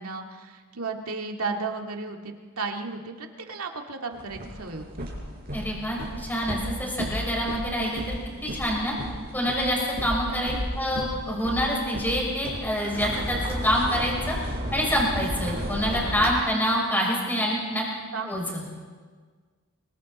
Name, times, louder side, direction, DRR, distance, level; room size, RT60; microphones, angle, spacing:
voice 1, 0.0-5.1 10.2-10.6 18.1-18.8, right 4 dB, 85° right, 3 dB, 2.1 m, -34 dB
sound 1, 4.1-16.3, equal, 40° right, 6.6 m, -34 dB
voice 2, 5.5-8.2 8.4-8.9 9.3-14.3 14.7-17.8 18.3-18.6, equal, 10° left, -3 dB, 6.1 m, -26 dB
29.0 x 23.5 x 4.2 m, 1.5 s
head